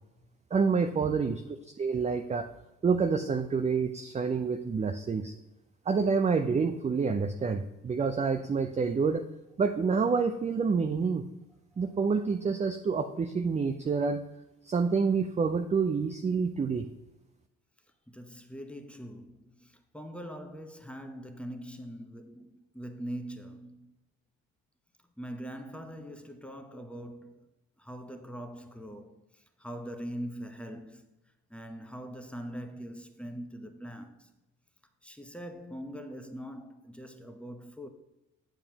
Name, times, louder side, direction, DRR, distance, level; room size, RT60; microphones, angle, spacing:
voice 1, 0.5-1.4 1.8-2.4 2.8-5.3 5.9-9.2 9.6-11.2 11.8-14.2 14.6-16.9, right 5 dB, 15° right, 0.4 m, -28 dB
voice 2, 1.0-1.3 11.7-11.8 18.1-23.9 25.2-27.4 27.8-31.1 31.5-34.3 35.0-37.9, equal, 5° left, 0.9 m, -42 dB
8.9 x 6.7 x 2.9 m
figure-of-eight pair, 45°, 41 cm